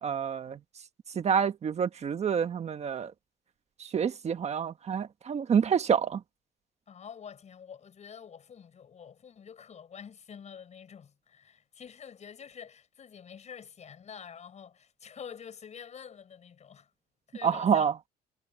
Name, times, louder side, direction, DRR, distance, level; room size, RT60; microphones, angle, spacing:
voice 1, 0.0-0.6 1.1-3.1 3.8-6.2 17.4-17.9, right 7 dB, 40° right, 1.4 m, -27 dB
voice 2, 6.9-16.9 17.3-17.9, left 7 dB, 40° left, 6.3 m, -47 dB
cardioid pair, 110°, 17 cm